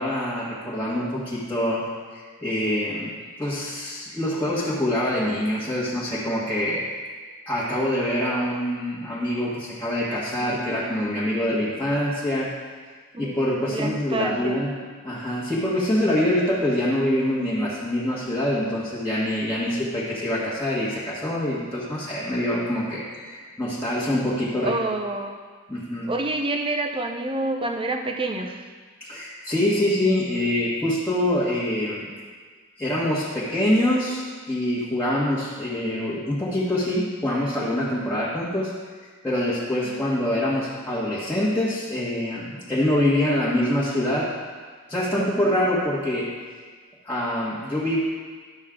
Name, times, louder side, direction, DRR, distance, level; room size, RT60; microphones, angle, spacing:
voice 1, 0.0-1.9 2.1-3.1 3.4-6.8 7.5-12.5 13.2-14.7 15.0-24.7 25.7-26.1 29.1-32.1 32.8-38.7 39.2-44.3 44.9-46.3 47.0-48.0, left 1 dB, 10° left, -9 dB, 1.4 m, -25 dB
voice 2, 10.4-10.8 13.1-14.6 19.7-19.8 24.6-25.3 26.1-28.6 39.8-39.9 45.2-45.5, right 2 dB, 25° right, 3 dB, 0.7 m, -28 dB
11.5 x 6.4 x 3.7 m, 1.5 s
head